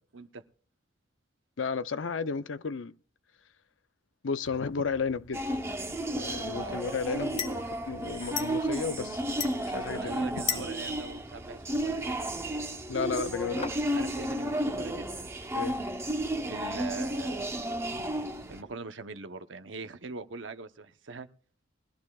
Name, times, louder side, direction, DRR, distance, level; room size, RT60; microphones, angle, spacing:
voice 1, 1.6-2.9 4.2-5.4 6.1-9.2 9.7-10.4 12.9-13.7 15.5-15.8, left 5 dB, 85° left, 0.6 m, -33 dB
sound 1, 4.4-17.2, left 6 dB, 35° left, 1.9 m, -43 dB
sound 2, 5.3-18.6, right 1 dB, 15° right, 1.0 m, -33 dB
voice 2, 6.4-6.8 9.9-12.4 13.9-15.3 16.5-17.6 18.5-21.3, right 3 dB, 75° right, 0.9 m, -42 dB
21.0 x 14.0 x 2.4 m
head